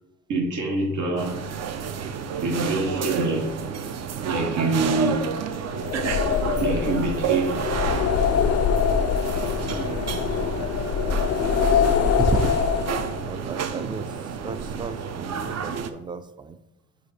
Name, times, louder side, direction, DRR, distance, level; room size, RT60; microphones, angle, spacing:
voice 1, 0.3-1.4 2.4-3.6 4.2-5.3 6.6-7.7 10.5-11.7, right 2 dB, 80° right, 1.4 m, -26 dB
sound 1, 1.2-15.9, right 7 dB, 60° right, 0.6 m, -30 dB
sound 2, 5.8-13.3, left 7 dB, 55° left, 0.4 m, -24 dB
voice 2, 10.3-10.6 11.0-11.4 11.7-11.8 12.3-12.5 13.1-14.1 14.4-16.6, right 4 dB, 15° right, 0.4 m, -33 dB
5.0 x 4.9 x 4.2 m
cardioid pair, 90°, 30 cm